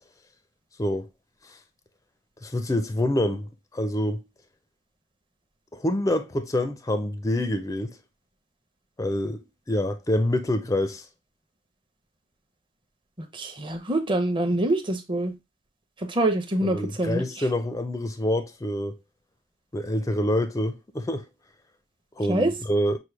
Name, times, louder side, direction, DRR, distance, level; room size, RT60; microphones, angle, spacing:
voice 1, 2.4-4.2 5.7-8.0 9.0-11.1 16.6-19.0 19.7-21.3 22.2-23.0, left 1 dB, 15° left, 0.4 m, -26 dB
voice 2, 13.3-15.3 16.0-17.2 22.3-22.5, right 1 dB, 25° right, 0.7 m, -25 dB
6.0 x 2.2 x 3.3 m
head